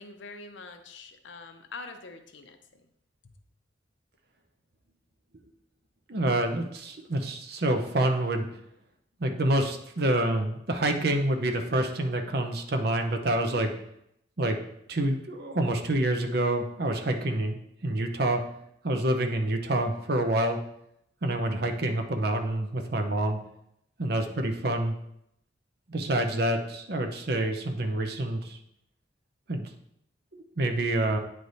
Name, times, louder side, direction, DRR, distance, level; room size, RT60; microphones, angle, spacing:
voice 1, 0.0-2.9 3.2-3.3, left 3 dB, 80° left, 6 dB, 0.7 m, -45 dB
voice 2, 6.1-8.5 9.2-13.7 14.4-14.6 14.9-17.6 17.8-18.4 18.8-20.6 21.2-23.4 24.0-25.0 25.9-28.6 29.5-29.7 30.3-31.2, right 1 dB, 55° right, 4 dB, 0.7 m, -27 dB
9.2 x 3.3 x 4.1 m, 0.77 s
head